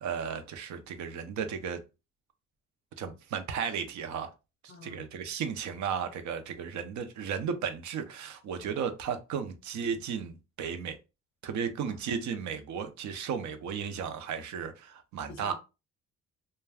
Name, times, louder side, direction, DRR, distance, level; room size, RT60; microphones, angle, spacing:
voice 1, 0.0-1.8 3.0-4.3 4.6-11.0 11.4-15.5, right 7 dB, 70° right, 0.6 m, -34 dB
voice 2, 4.7-5.0 8.5-8.8 11.9-12.1 15.3-15.5, left 3 dB, 40° left, 0.6 m, -49 dB
2.3 x 2.2 x 3.4 m
cardioid pair, 90°, 30 cm